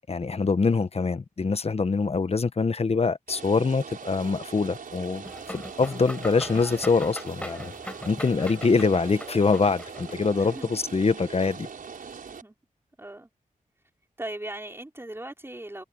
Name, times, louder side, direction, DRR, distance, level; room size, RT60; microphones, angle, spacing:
voice 1, 0.1-7.7 8.0-11.7, left 4 dB, 45° left, 1.2 m, -24 dB
Rain, 3.3-12.4, right 6 dB, 80° right, 5.6 m, -41 dB
sound 1, 5.2-10.3, left 1 dB, 10° left, 4.4 m, -40 dB
voice 2, 10.4-10.7 12.3-12.5 13.0-13.3 14.2-15.8, right 1 dB, 15° right, 4.9 m, -39 dB
cardioid pair, 60°, 14 cm